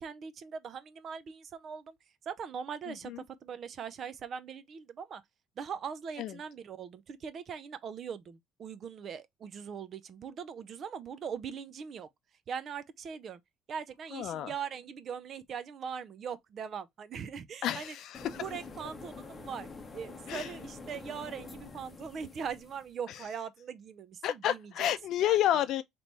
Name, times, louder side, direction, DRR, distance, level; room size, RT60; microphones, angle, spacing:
voice 1, 0.0-2.0 2.2-5.2 5.6-12.1 12.5-13.4 13.7-18.0 18.3-24.9 25.2-25.7, right 7 dB, 45° right, 0.5 m, -41 dB
voice 2, 2.9-3.2 6.2-6.3 14.1-14.5 17.6-18.4 20.3-20.5 24.2-25.8, left 12 dB, 60° left, 0.5 m, -30 dB
sound 1, 18.1-22.9, left 4 dB, 20° left, 0.8 m, -47 dB
3.3 x 3.0 x 4.0 m
cardioid pair, 130°, 0 cm